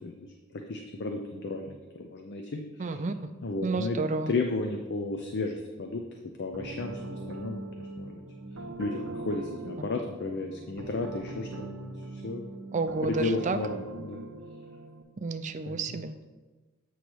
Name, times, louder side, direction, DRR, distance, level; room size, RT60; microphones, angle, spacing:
voice 1, 0.5-3.0 3.4-4.0 4.3-6.0 6.4-8.2 8.8-12.5 13.0-14.2 15.7-16.0, left 3 dB, 55° left, 3 dB, 0.5 m, -34 dB
voice 2, 2.8-3.1 3.6-4.3 9.8-9.9 12.7-13.6 15.2-16.1, right 3 dB, 35° right, 9 dB, 0.4 m, -30 dB
sound 1, 6.5-15.0, right 2 dB, 80° right, 0.8 m, -41 dB
8.1 x 3.1 x 6.2 m, 1.3 s
head